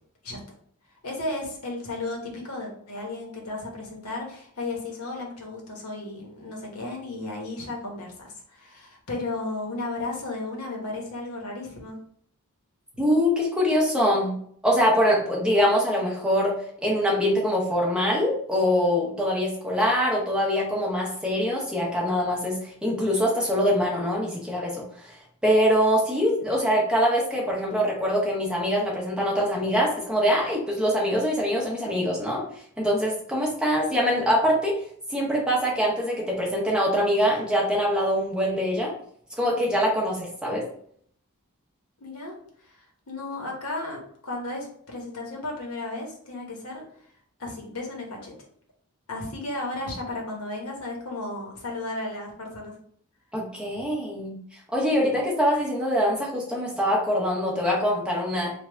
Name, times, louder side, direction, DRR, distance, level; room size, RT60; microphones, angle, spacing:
voice 1, 1.0-12.0 42.0-42.4 42.6-42.8 43.1-46.8 47.4-48.3 49.1-52.7 53.7-53.8, left 2 dB, 80° left, 0 dB, 1.0 m, -34 dB
voice 2, 13.0-14.4 14.6-16.5 16.8-24.8 25.4-32.4 32.8-34.7 35.1-38.9 39.4-40.6 53.3-54.4 54.7-58.5, equal, 5° right, -4 dB, 0.7 m, -23 dB
3.3 x 2.3 x 3.3 m, 0.63 s
head